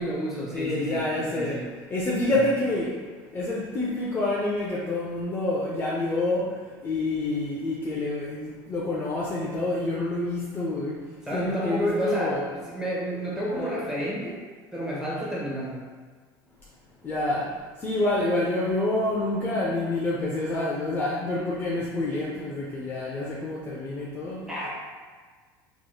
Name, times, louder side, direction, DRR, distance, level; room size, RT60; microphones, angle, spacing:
voice 1, 0.0-1.7 11.2-14.4 14.7-15.8 24.4-24.7, equal, 5° right, -6 dB, 1.0 m, -30 dB
voice 2, 0.5-1.6 1.9-2.9 3.3-6.6 6.8-11.0 11.3-12.5 13.6-13.8 17.0-17.5 17.8-24.4, left 2 dB, 20° left, -5 dB, 0.5 m, -27 dB
4.6 x 3.0 x 2.3 m, 1.5 s
cardioid pair, 140°, 10 cm